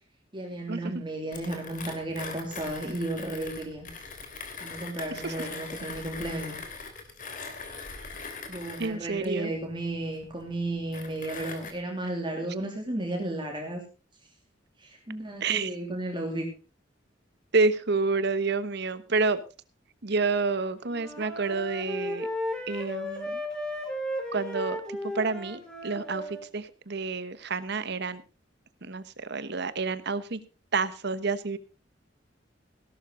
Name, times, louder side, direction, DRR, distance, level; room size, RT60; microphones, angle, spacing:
voice 1, 0.3-3.9 4.6-6.6 8.5-13.8 14.8-16.5, right 1 dB, 25° right, 1 dB, 2.9 m, -33 dB
Mechanisms, 1.3-11.7, left 4 dB, 45° left, 3.0 m, -41 dB
voice 2, 8.8-9.5 15.4-15.7 17.5-19.4 20.0-22.3 22.7-23.4 24.3-28.2 28.8-30.4 30.7-31.6, right 4 dB, 60° right, 14 dB, 1.2 m, -29 dB
Wind instrument woodwind instrument, 20.9-26.4, left 1 dB, 5° left, 2.8 m, -35 dB
17.0 x 12.0 x 3.9 m, 0.33 s
head